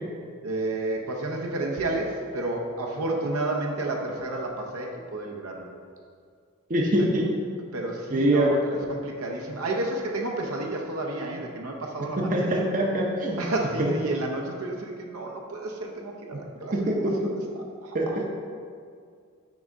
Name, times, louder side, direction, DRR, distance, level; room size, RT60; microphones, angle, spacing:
voice 1, 0.4-5.7 7.0-7.1 7.7-8.6 8.9-12.7 13.4-18.1, right 2 dB, 75° right, 0 dB, 0.7 m, -31 dB
voice 2, 6.7-7.3 8.1-8.6 12.2-13.4 13.8-13.9 16.7-17.3 17.9-18.2, right 1 dB, 35° right, -1 dB, 0.6 m, -24 dB
6.0 x 3.5 x 5.2 m, 2.2 s
head